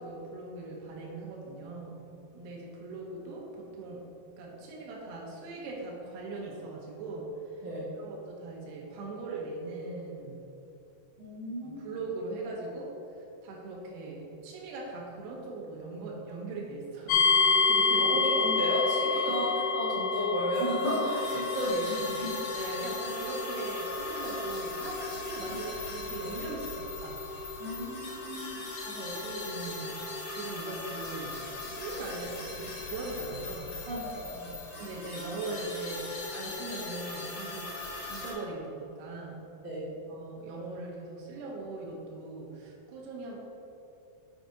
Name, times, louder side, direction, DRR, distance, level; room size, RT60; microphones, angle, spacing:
voice 1, 0.0-2.0 2.3-4.1 4.4-7.7 8.0-10.4 11.6-18.1 19.2-19.4 22.5-27.5 28.8-31.4 31.6-33.7 34.8-37.8 38.1-39.4 40.1-43.4, right 3 dB, 85° right, -3 dB, 3.0 m, -40 dB
voice 2, 11.2-11.9 18.0-22.3 27.6-28.6 33.9-34.5 39.6-39.9, equal, 50° right, -10 dB, 1.6 m, -32 dB
sound 1, 17.1-31.9, left 4 dB, 80° left, 2.2 m, -31 dB
sound 2, 20.5-38.3, left 2 dB, 65° left, 1.3 m, -40 dB
7.9 x 4.7 x 4.2 m, 2.7 s
omnidirectional pair, 4.5 m